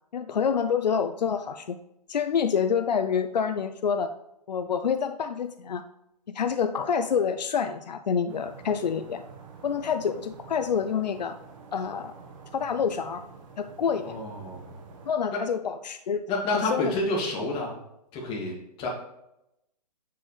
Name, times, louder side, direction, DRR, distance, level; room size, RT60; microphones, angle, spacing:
voice 1, 0.1-1.8 2.1-4.1 4.5-5.8 6.3-9.2 9.6-11.4 11.7-12.1 12.5-13.2 13.6-14.2 15.1-16.2 16.5-16.9, left 7 dB, 80° left, 9 dB, 0.6 m, -27 dB
sound 1, 8.3-15.1, right 4 dB, 50° right, 1.5 m, -48 dB
voice 2, 13.9-14.8 15.3-15.4 16.3-17.8 18.1-18.9, left 2 dB, 25° left, -2 dB, 2.6 m, -29 dB
8.4 x 7.7 x 3.4 m, 0.83 s
hypercardioid pair, 135°, 21 cm